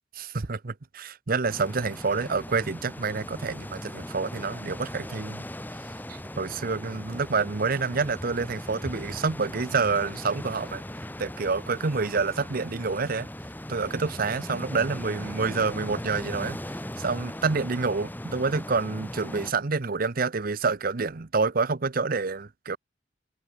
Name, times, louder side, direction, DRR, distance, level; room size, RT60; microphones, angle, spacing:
voice 1, 0.1-5.4 6.1-10.8 11.2-13.3 13.7-22.8, right 4 dB, 50° right, 0.8 m, -28 dB
sound 1, 1.4-19.5, left 1 dB, 10° left, 4.2 m, -38 dB
head